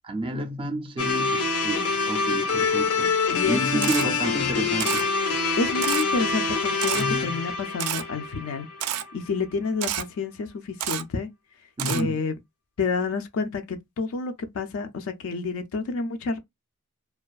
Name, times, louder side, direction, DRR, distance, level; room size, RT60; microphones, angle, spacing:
voice 1, 0.0-5.1 6.9-7.4 11.8-12.2, right 1 dB, 25° right, 0.4 m, -30 dB
sound 1, 1.0-9.1, left 4 dB, 85° left, 0.7 m, -26 dB
voice 2, 3.3-4.1 5.6-11.3 11.9-12.3 12.8-16.4, left 4 dB, 65° left, 0.4 m, -29 dB
Camera, 3.8-4.0 4.8-5.0 5.8-6.0 6.8-7.0 7.8-8.0 8.8-9.0 9.8-10.0 10.8-11.0 11.8-12.0, right 11 dB, 85° right, 0.4 m, -28 dB
2.5 x 2.3 x 2.3 m
head